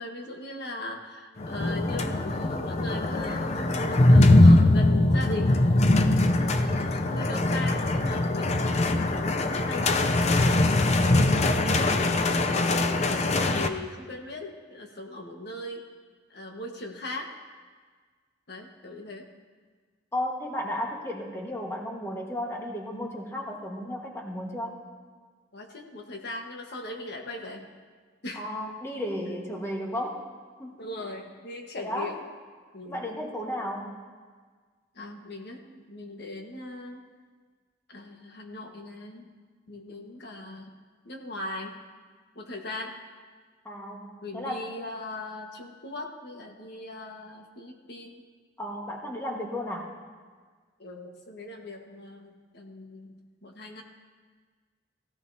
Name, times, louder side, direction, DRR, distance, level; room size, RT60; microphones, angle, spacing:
voice 1, 0.0-5.7 6.6-12.2 13.0-15.9 16.3-17.3 18.5-19.3 25.5-27.7 28.2-28.4 30.8-32.2 32.7-33.0 34.9-37.0 37.9-39.3 39.7-40.7 41.0-41.8 42.3-43.0 44.2-48.2 50.8-53.8, left 2 dB, 60° left, 2 dB, 1.4 m, -39 dB
sound 1, 1.4-13.7, left 2 dB, 35° left, 0.6 m, -22 dB
voice 2, 20.1-24.8 28.3-30.2 30.6-31.1 31.7-32.2 32.8-34.0 43.6-44.1 44.3-44.7 48.6-49.9, left 1 dB, 15° left, -1 dB, 1.5 m, -34 dB
16.0 x 15.0 x 2.8 m, 1.5 s
head